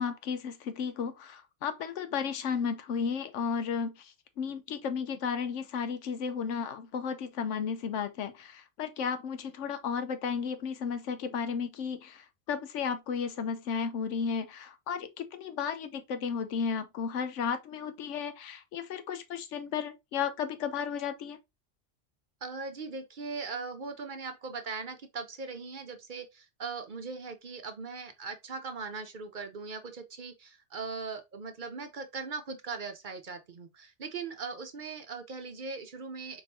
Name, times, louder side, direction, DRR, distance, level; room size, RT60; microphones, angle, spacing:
voice 1, 0.0-21.4, left 6 dB, 90° left, 1.0 m, -34 dB
voice 2, 22.4-36.4, right 4 dB, 50° right, 0.7 m, -39 dB
4.4 x 3.5 x 2.7 m
omnidirectional pair, 1.2 m